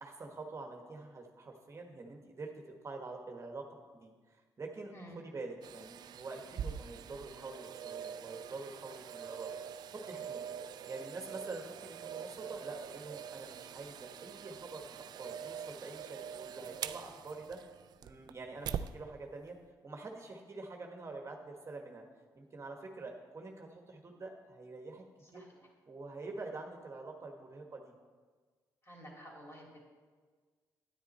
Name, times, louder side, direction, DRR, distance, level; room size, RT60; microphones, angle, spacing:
voice 1, 0.0-3.6 3.9-9.5 9.9-10.4 10.9-17.6 18.0-19.6 19.8-22.0 22.3-25.0 25.3-25.4 25.9-27.9, right 3 dB, 40° right, 2 dB, 1.4 m, -46 dB
sound 1, 5.6-18.9 19.4-19.5, right 8 dB, 65° right, 0.4 m, -44 dB
voice 2, 28.8-29.8, equal, 35° left, -2 dB, 3.6 m, -51 dB
9.7 x 9.5 x 4.3 m, 1.5 s
supercardioid pair, 65°, 8 cm